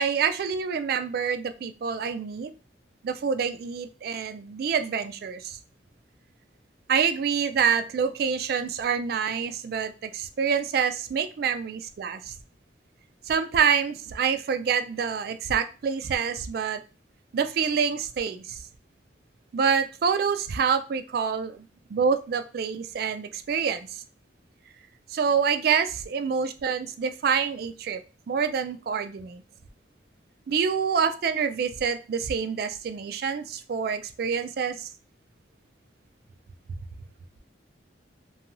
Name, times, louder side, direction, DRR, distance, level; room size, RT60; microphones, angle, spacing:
voice 1, 0.0-2.5 3.0-5.6 6.9-12.3 13.3-16.8 17.3-18.6 19.5-21.7 21.9-23.9 25.1-28.0 28.3-29.4 30.5-34.9, right 6 dB, 55° right, 9 dB, 0.3 m, -26 dB
2.5 x 2.3 x 2.9 m, 0.34 s
head